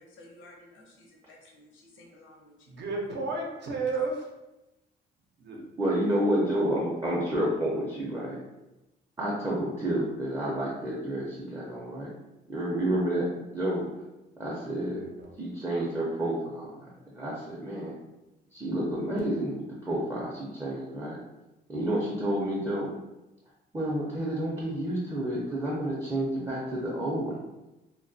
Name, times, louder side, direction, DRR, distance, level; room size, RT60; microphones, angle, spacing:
voice 1, 0.0-2.7, left 1 dB, 75° left, -1 dB, 0.7 m, -54 dB
voice 2, 2.7-4.3 5.4-5.7 14.8-15.3, right 3 dB, 60° right, 0 dB, 0.6 m, -33 dB
voice 3, 5.8-8.4 9.2-12.1 12.5-13.3 13.5-13.9 14.4-15.0 15.4-17.9 18.5-21.2 21.7-22.9 23.7-27.4, right 1 dB, 15° right, -6 dB, 0.5 m, -30 dB
2.2 x 2.2 x 2.6 m, 0.99 s
cardioid pair, 90°, 20 cm